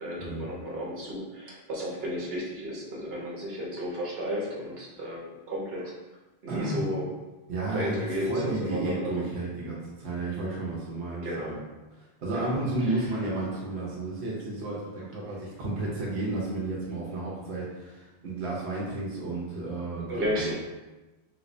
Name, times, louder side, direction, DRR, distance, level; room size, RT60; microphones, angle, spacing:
voice 1, 0.0-5.9 6.4-7.1 7.7-9.1 11.1-11.5 12.4-12.6 12.9-13.0 20.1-20.5, equal, 65° right, -4 dB, 1.2 m, -33 dB
voice 2, 6.5-6.8 7.5-11.6 11.9-20.5, right 2 dB, 85° right, -5 dB, 1.0 m, -32 dB
3.5 x 3.0 x 2.6 m, 1.1 s
omnidirectional pair, 1.1 m